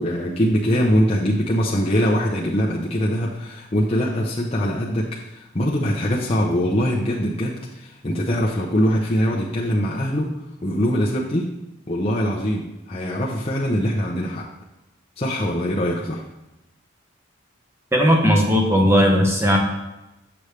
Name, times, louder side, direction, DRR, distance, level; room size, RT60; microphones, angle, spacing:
voice 1, 0.0-10.4 10.6-11.5 11.9-14.5 15.2-16.2, equal, 30° left, -4 dB, 0.7 m, -22 dB
voice 2, 17.9-19.6, equal, 15° right, 0 dB, 1.0 m, -17 dB
6.9 x 6.4 x 3.3 m, 0.96 s
head